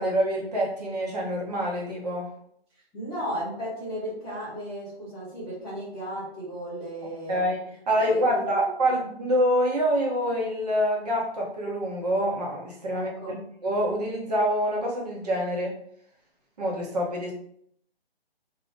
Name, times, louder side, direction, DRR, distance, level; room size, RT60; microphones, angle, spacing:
voice 1, 0.0-2.3 7.3-15.8 16.6-17.3, equal, 40° right, -1 dB, 0.8 m, -26 dB
voice 2, 2.9-7.4 7.9-8.9 12.9-13.3, equal, ahead, -23 dB, 0.5 m, -35 dB
2.7 x 2.1 x 3.4 m, 0.67 s
hypercardioid pair, 155°, 31 cm